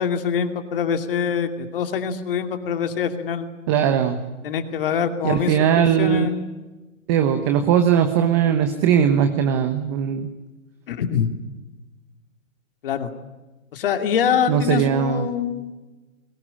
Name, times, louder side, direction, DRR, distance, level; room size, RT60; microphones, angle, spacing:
voice 1, 0.0-3.5 4.4-6.4 10.9-11.3 12.8-13.1 13.7-15.7, left 7 dB, 40° left, 7 dB, 2.7 m, -24 dB
voice 2, 3.7-4.2 4.9-6.3 7.1-10.3 14.5-15.3, right 8 dB, 20° right, 8 dB, 1.1 m, -20 dB
22.0 x 20.0 x 10.0 m, 1.2 s
hypercardioid pair, 160°, 41 cm